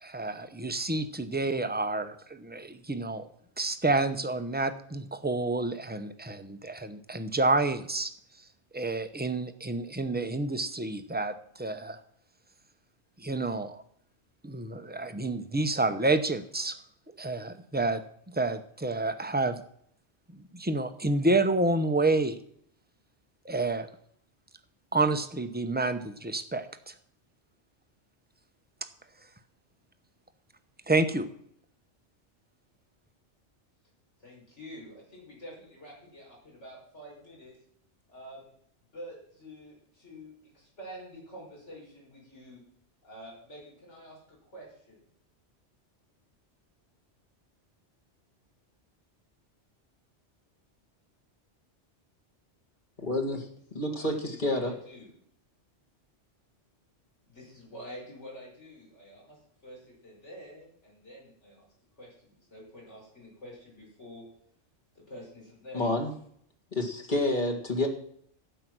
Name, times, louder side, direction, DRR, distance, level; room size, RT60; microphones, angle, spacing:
voice 1, 0.0-3.2 3.6-8.1 8.7-12.0 13.2-13.8 14.4-16.8 17.2-18.0 18.3-19.6 20.3-22.4 23.4-23.9 24.9-26.9 30.9-31.3, right 2 dB, 10° right, 0.6 m, -29 dB
voice 2, 34.2-37.6 38.1-38.5 38.9-42.6 43.0-45.0 53.7-55.1 57.2-61.7 62.0-64.2 64.9-65.9, equal, 80° left, 5.8 m, -48 dB
voice 3, 53.0-53.5 53.7-54.7 65.7-66.1 66.7-67.9, left 1 dB, 45° left, 1.9 m, -28 dB
12.0 x 9.1 x 6.1 m
omnidirectional pair, 1.2 m